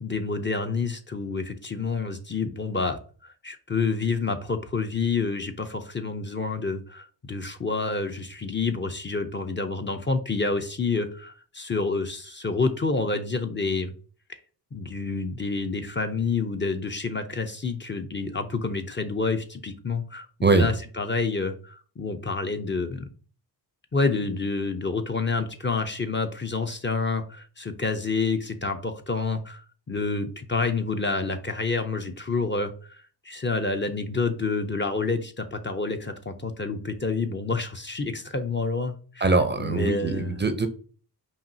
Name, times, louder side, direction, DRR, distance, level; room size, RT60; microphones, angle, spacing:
voice 1, 0.0-13.9 14.3-14.4 14.7-23.1 23.9-39.3 39.6-40.4, left 4 dB, 25° left, 6 dB, 0.5 m, -28 dB
voice 2, 39.2-40.7, right 3 dB, 25° right, 9 dB, 0.5 m, -22 dB
5.7 x 2.4 x 2.7 m, 0.40 s
cardioid pair, 60°, 42 cm